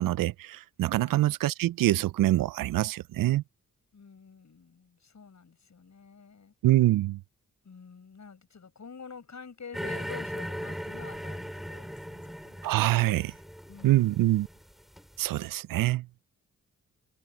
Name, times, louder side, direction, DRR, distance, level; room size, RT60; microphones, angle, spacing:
voice 1, 0.0-3.4 6.6-7.2 12.6-13.3 13.8-14.5 15.2-16.1, right 15 dB, 75° right, 0.5 m, -25 dB
voice 2, 3.9-6.5 7.6-12.6 13.7-14.2, left 5 dB, 55° left, 7.8 m, -48 dB
sound 1, 9.7-15.3, equal, ahead, 6.0 m, -38 dB
supercardioid pair, 45°, 34 cm